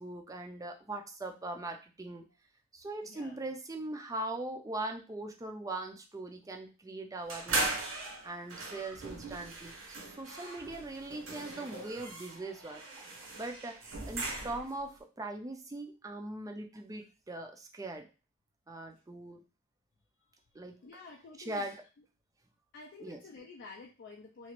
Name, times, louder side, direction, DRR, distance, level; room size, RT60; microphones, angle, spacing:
voice 1, 0.0-2.2 2.7-7.9 8.2-13.1 13.4-18.1 18.7-19.4 20.5-20.8 21.5-21.8 23.0-23.2, right 2 dB, 15° right, 3 dB, 0.4 m, -41 dB
voice 2, 3.0-3.4 20.8-21.7 22.7-24.5, left 3 dB, 50° left, 0 dB, 0.4 m, -50 dB
sound 1, 7.3-14.8, right 2 dB, 65° right, 0.8 m, -39 dB
2.9 x 2.4 x 2.9 m, 0.32 s
head